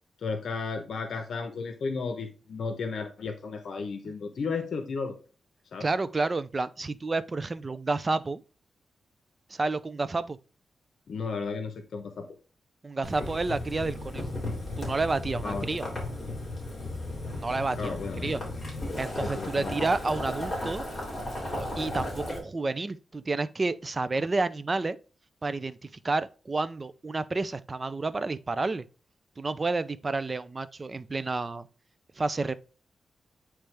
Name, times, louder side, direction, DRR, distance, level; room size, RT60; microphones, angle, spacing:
voice 1, 0.2-5.2 5.7-5.9 11.1-12.3 15.4-15.7 17.8-18.4 19.2-19.7, left 4 dB, 70° left, 0.8 m, -34 dB
voice 2, 5.8-8.4 9.5-10.4 12.8-14.3 14.8-15.9 17.4-18.4 19.0-20.9 21.5-25.0 25.4-28.8 29.4-31.7 32.2-32.5, right 3 dB, 30° right, 0.4 m, -30 dB
Boiling, 13.0-22.4, left 1 dB, 20° left, 3.3 m, -35 dB
9.1 x 3.2 x 3.3 m
wide cardioid pair, 115°, 0 cm